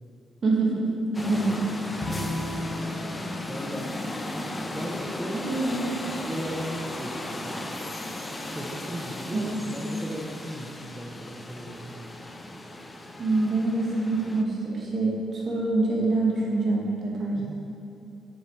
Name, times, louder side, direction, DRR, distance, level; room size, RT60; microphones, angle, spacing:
voice 1, 0.4-1.6 5.3-5.9 9.3-9.6 13.2-17.4, right 2 dB, 50° right, -3 dB, 2.1 m, -25 dB
sound 1, 1.1-14.4, left 1 dB, 20° left, 0.7 m, -36 dB
Bowed string instrument, 2.0-5.3, left 2 dB, 40° left, 1.4 m, -36 dB
voice 2, 2.0-2.6 3.5-3.9 4.7-5.4 6.2-7.6 8.5-12.0 17.3-17.6, equal, 10° right, -2 dB, 0.9 m, -37 dB
7.2 x 6.9 x 4.8 m, 2.7 s
cardioid pair, 90°, 0 cm